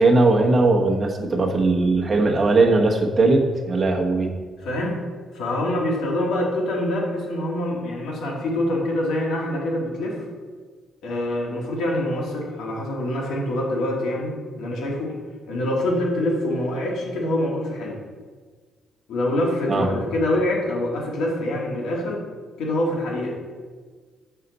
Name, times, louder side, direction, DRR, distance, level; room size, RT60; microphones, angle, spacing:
voice 1, 0.0-4.4 19.7-19.9, right 3 dB, 25° right, 0 dB, 1.0 m, -19 dB
voice 2, 4.6-5.0 5.3-10.3 11.0-15.2 15.5-18.0 19.1-22.2 22.6-23.4, left 1 dB, 80° left, -2 dB, 1.9 m, -25 dB
6.5 x 5.6 x 4.0 m, 1.5 s
cardioid pair, 130°, 0 cm